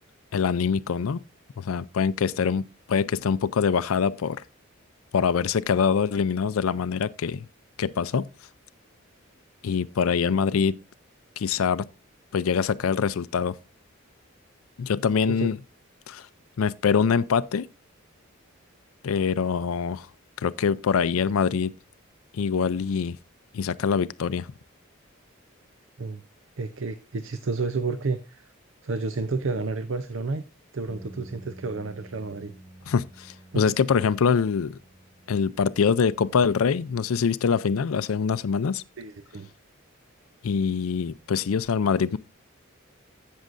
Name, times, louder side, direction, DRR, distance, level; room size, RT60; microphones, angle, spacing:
voice 1, 0.3-1.2 1.6-4.4 5.1-7.5 7.8-8.3 9.6-10.8 11.4-11.9 12.3-13.6 14.8-15.6 16.1-16.3 16.6-17.7 19.0-20.1 20.4-21.7 22.3-23.2 23.5-24.5 32.9-34.8 35.3-38.8 40.4-42.2, left 6 dB, 85° left, 0.4 m, -24 dB
voice 2, 26.6-28.5 28.8-30.4 30.7-32.5 33.5-33.6 39.0-39.5, right 3 dB, 65° right, 0.6 m, -30 dB
sound 1, 30.9-37.1, right 1 dB, 15° right, 1.6 m, -50 dB
15.5 x 6.5 x 2.5 m
head